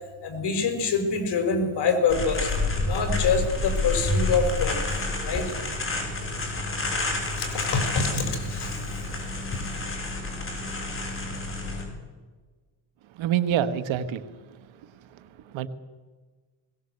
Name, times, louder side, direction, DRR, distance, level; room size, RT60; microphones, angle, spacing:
voice 1, 0.2-2.5 2.8-4.8 5.2-5.5 7.3-8.8, left 4 dB, 55° left, 5 dB, 5.2 m, -25 dB
sound 1, 2.1-11.8, left 2 dB, 25° left, 6.3 m, -29 dB
voice 2, 13.2-14.2 15.5-15.7, right 10 dB, 75° right, 12 dB, 1.6 m, -25 dB
21.0 x 17.0 x 7.9 m, 1.4 s
cardioid pair, 105°, 47 cm